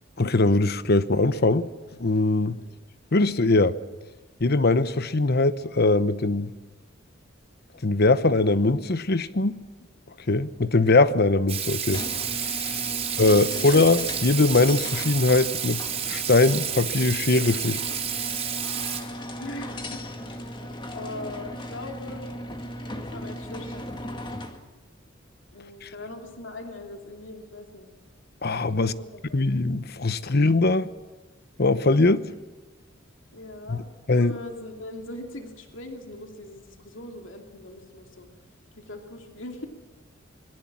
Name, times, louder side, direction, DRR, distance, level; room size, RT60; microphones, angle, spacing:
voice 1, 0.2-1.7 2.0-2.6 3.1-3.8 4.4-6.5 7.8-9.6 10.3-12.0 12.3-12.9 13.2-15.8 16.0-17.8 25.8-25.9 28.4-28.9 29.3-30.9 31.6-32.2 33.7-33.8 34.1-34.3, left 2 dB, 55° left, 14 dB, 1.0 m, -21 dB
Water tap faucet / Sink (filling or washing), 11.5-19.0, right 8 dB, 30° right, 3.9 m, -30 dB
sound 1, 11.8-24.7, left 1 dB, 25° left, 2.0 m, -37 dB
voice 2, 12.8-13.1 13.5-13.7 19.4-20.6 20.9-22.3 22.9-24.3 25.5-27.9 28.7-29.2 33.3-33.9 34.2-38.3 38.8-39.7, left 1 dB, 70° left, 3 dB, 2.8 m, -41 dB
26.5 x 22.5 x 7.4 m, 1.2 s
head